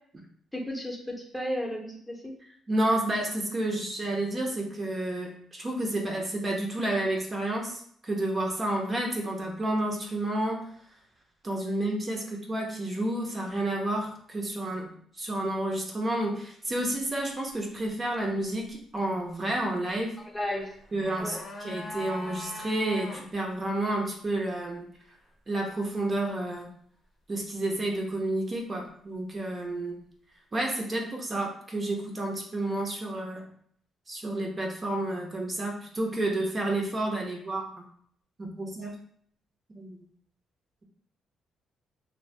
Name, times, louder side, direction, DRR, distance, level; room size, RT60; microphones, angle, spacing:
voice 1, 0.5-2.2 20.3-20.7 21.1-21.4, equal, 10° left, -1 dB, 0.7 m, -33 dB
voice 2, 2.7-10.7 11.4-14.9 15.2-20.2 20.9-24.9 25.5-26.7 27.3-30.0 30.5-33.4 34.1-37.8 38.4-39.0 39.7-40.0, right 1 dB, 35° right, 0 dB, 0.6 m, -30 dB
sound 1, 20.7-23.3 23.5-23.6, left 2 dB, 55° left, 0.6 m, -40 dB
2.6 x 2.1 x 3.2 m, 0.63 s
cardioid pair, 90°, 0 cm